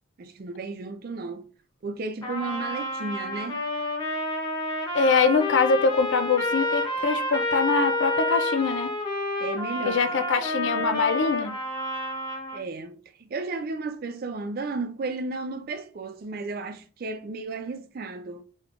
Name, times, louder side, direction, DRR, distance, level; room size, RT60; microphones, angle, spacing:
voice 1, 0.2-1.5 1.8-3.6 9.4-10.2 12.5-18.4, right 3 dB, 45° right, 0.4 m, -34 dB
Trumpet, 2.2-12.6, left 1 dB, 20° left, 0.7 m, -29 dB
voice 2, 4.9-8.9 9.9-11.6, left 4 dB, 60° left, 0.4 m, -23 dB
3.4 x 3.1 x 2.5 m
head